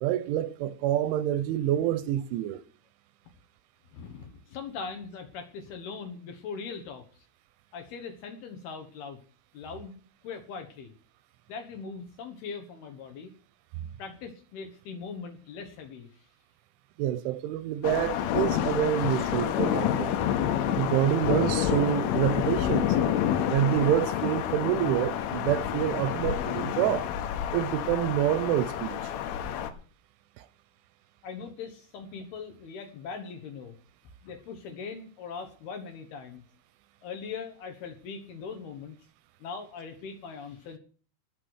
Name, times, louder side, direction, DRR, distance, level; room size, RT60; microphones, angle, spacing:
voice 1, 0.0-2.6 17.0-20.2 20.7-23.0 23.5-27.1 27.5-29.1 30.4-30.5, right 12 dB, 80° right, 3.0 m, -27 dB
voice 2, 3.9-7.1 7.7-9.2 9.5-10.0 10.2-10.9 11.5-13.3 14.0-16.3 31.2-33.8 34.2-36.4 37.0-39.0 39.4-40.8, left 5 dB, 65° left, 2.8 m, -40 dB
sound 1, 17.8-29.7, left 10 dB, 85° left, 3.7 m, -28 dB
19.5 x 6.6 x 6.3 m
omnidirectional pair, 5.7 m